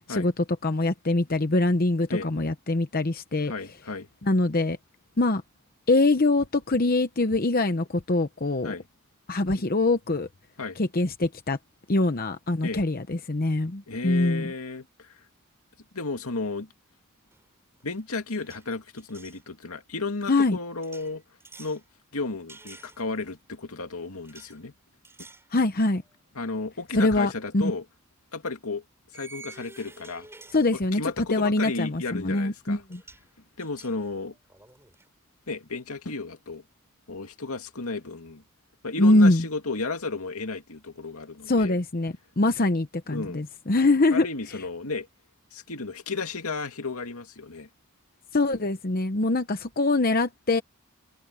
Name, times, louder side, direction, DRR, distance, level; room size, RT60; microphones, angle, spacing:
voice 1, 0.6-3.5 4.2-4.8 5.2-5.4 5.9-8.7 9.3-10.3 10.8-11.6 11.9-14.5 20.3-20.6 25.5-26.0 26.9-27.7 30.5-31.0 31.3-33.0 39.0-39.4 41.5-44.3 48.3-50.6, left 2 dB, 40° left, 0.8 m, -23 dB
voice 2, 3.5-4.1 8.6-8.8 10.6-10.8 12.6-12.8 13.9-15.2 15.9-16.7 17.8-21.2 21.6-21.8 22.1-24.7 26.4-27.8 28.3-28.8 29.1-30.3 30.7-32.8 33.6-34.4 35.5-36.6 37.1-38.4 38.8-41.8 43.1-43.4 44.1-45.1 45.5-47.7, left 3 dB, 80° left, 2.4 m, -33 dB
sound 1, 17.3-17.5 17.8-19.4 20.8-21.8 22.5-23.4 24.2-24.6 25.0-25.5 26.0-26.1 27.6-27.8 29.1-31.2 32.6-32.7 32.9-33.3 33.6-35.1, right 3 dB, 10° right, 5.3 m, -50 dB
head